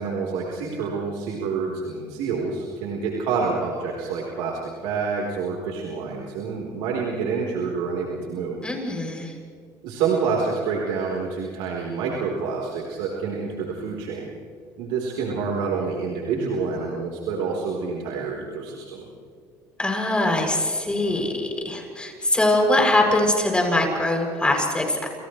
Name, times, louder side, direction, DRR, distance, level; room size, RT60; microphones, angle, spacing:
voice 1, 0.0-8.6 9.8-14.3 14.8-19.1, right 5 dB, 80° right, -2 dB, 4.1 m, -27 dB
voice 2, 8.6-9.3 19.8-25.1, left 1 dB, 10° left, 1 dB, 7.5 m, -22 dB
30.0 x 29.0 x 3.3 m, 2.2 s
supercardioid pair, 95°, 9 cm